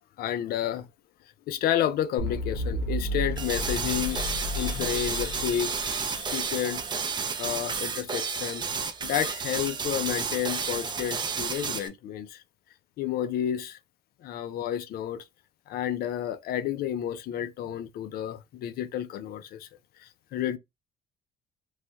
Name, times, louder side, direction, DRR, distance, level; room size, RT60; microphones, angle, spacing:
voice 1, 0.2-0.9 1.5-6.8 7.4-8.7 9.0-12.4 13.0-13.8 14.2-15.2 15.7-19.7 20.0-20.6, left 10 dB, 65° left, 0.5 m, -31 dB
sound 1, 2.2-6.3, equal, 80° left, 1.0 m, -32 dB
sound 2, 3.4-11.9, right 5 dB, 25° right, 0.5 m, -31 dB
3.1 x 2.3 x 2.7 m
cardioid pair, 110°, 17 cm